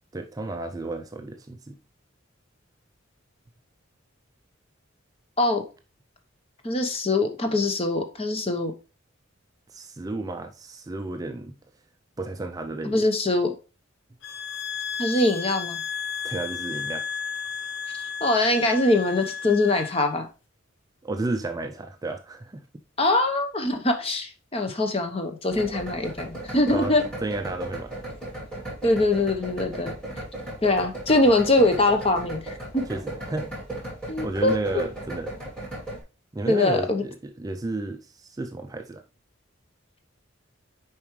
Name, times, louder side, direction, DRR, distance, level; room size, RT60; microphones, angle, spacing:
voice 1, 0.1-1.8 9.7-11.6 12.2-13.1 16.2-17.1 21.0-22.7 26.7-28.0 32.9-33.6 34.2-35.4 36.3-39.0, right 2 dB, 20° right, 0.3 m, -32 dB
voice 2, 6.6-8.7 12.8-13.5 15.0-15.8 18.2-20.3 23.0-27.0 28.8-29.9 30.6-32.8 34.1-34.8 36.5-37.0, left 2 dB, 30° left, 0.9 m, -23 dB
sound 1, 14.2-20.1, left 6 dB, 60° left, 0.8 m, -33 dB
sound 2, 25.5-36.0, right 1 dB, 5° left, 2.8 m, -36 dB
6.9 x 4.7 x 3.1 m
head